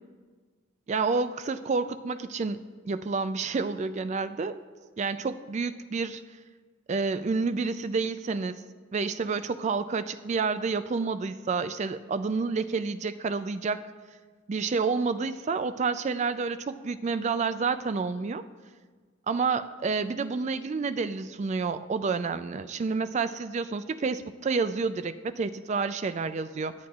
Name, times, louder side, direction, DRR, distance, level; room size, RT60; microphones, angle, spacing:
voice 1, 0.9-4.6 5.0-6.2 6.9-8.6 8.9-13.8 14.5-18.4 19.3-26.7, right 4 dB, 35° right, 12 dB, 0.3 m, -29 dB
17.0 x 9.5 x 2.4 m, 1.5 s
head